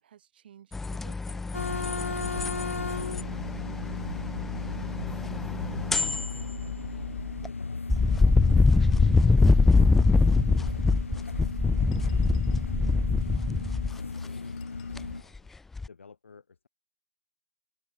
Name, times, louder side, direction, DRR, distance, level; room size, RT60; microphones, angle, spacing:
voice 1, 0.0-2.1, right 10 dB, 45° right, 6.8 m, -55 dB
sound 1, 0.7-7.5 7.9-14.0 15.0-15.4 15.8-15.9, left 3 dB, 5° left, 0.3 m, -24 dB
sound 2, 1.5-15.2, left 4 dB, 85° left, 0.6 m, -35 dB
voice 2, 5.4-7.8 8.2-8.6 9.2-10.9 11.2-13.7 14.2-14.6 15.1-15.5 15.9-16.7, left 5 dB, 70° left, 6.1 m, -57 dB
sound 3, 11.9-12.8 14.6-15.1, left 17 dB, 35° left, 5.5 m, -61 dB
open air
figure-of-eight pair, 140°, 7 cm